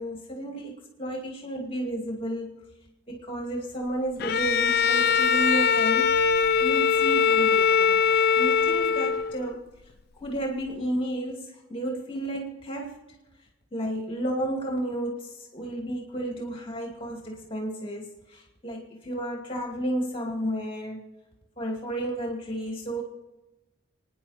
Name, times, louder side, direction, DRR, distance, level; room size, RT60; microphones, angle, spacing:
voice 1, 0.0-2.5 3.1-6.1 6.6-8.0 8.4-9.9 10.2-12.9 13.7-21.0 21.6-23.0, right 1 dB, 25° left, -1 dB, 2.5 m, -32 dB
Bowed string instrument, 4.2-9.5, left 6 dB, 50° left, 0.5 m, -22 dB
29.5 x 10.5 x 4.3 m, 1.0 s
head